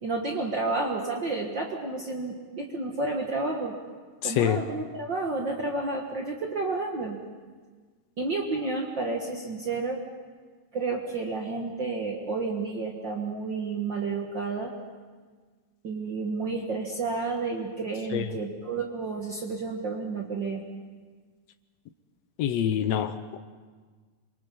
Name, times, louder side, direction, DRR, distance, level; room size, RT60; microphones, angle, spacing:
voice 1, 0.0-3.8 4.2-7.2 8.2-10.0 10.7-14.7 15.8-20.6, right 3 dB, 45° right, 1 dB, 1.8 m, -31 dB
voice 2, 4.2-4.6 18.1-18.2 22.4-23.4, left 10 dB, 70° left, 10 dB, 1.7 m, -26 dB
27.0 x 24.0 x 5.5 m, 1.5 s
omnidirectional pair, 3.6 m